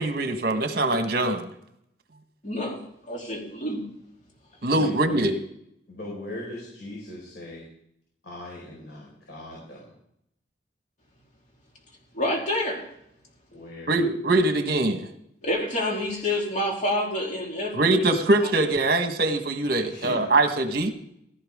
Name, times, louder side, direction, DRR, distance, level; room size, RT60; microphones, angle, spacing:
voice 1, 0.0-1.5 4.6-5.3 13.9-15.1 17.7-20.9, right 2 dB, 55° right, 7 dB, 1.4 m, -23 dB
voice 2, 2.4-2.8 3.1-3.8 12.1-12.8 15.4-18.0, left 1 dB, 40° left, -2 dB, 3.7 m, -28 dB
voice 3, 4.7-5.4 5.9-7.6 8.2-9.9 13.5-14.0 19.8-20.3, left 1 dB, 70° left, -4 dB, 5.0 m, -38 dB
16.5 x 13.5 x 3.7 m, 0.74 s
head